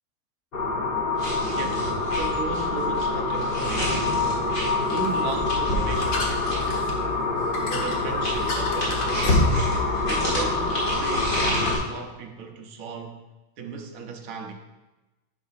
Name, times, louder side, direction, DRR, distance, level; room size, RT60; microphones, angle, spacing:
sound 1, 0.5-11.8, left 3 dB, 45° left, 1.1 m, -26 dB
sound 2, 1.1-6.9 7.8-11.8, left 1 dB, 60° left, 2.5 m, -29 dB
voice 1, 1.5-4.0 4.9-6.7 7.6-9.7 10.1-13.2 13.6-14.5, right 5 dB, 65° right, 3 dB, 1.2 m, -36 dB
sound 3, 3.5-10.4, left 2 dB, 80° left, 1.7 m, -37 dB
9.5 x 4.1 x 5.7 m, 1.1 s
omnidirectional pair, 1.6 m